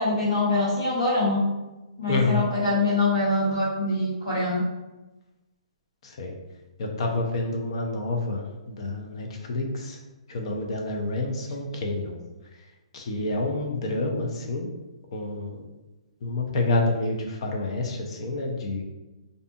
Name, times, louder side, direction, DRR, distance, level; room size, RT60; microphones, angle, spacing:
voice 1, 0.0-1.4 2.0-4.6, left 2 dB, 75° left, -10 dB, 1.0 m, -24 dB
voice 2, 2.1-2.4 6.0-6.3 6.8-10.0 10.3-12.2 12.9-14.7 15.1-15.6 16.2-18.8, left 2 dB, 50° left, 2 dB, 0.5 m, -28 dB
2.6 x 2.4 x 2.5 m, 1.1 s
hypercardioid pair, 155°, 4 cm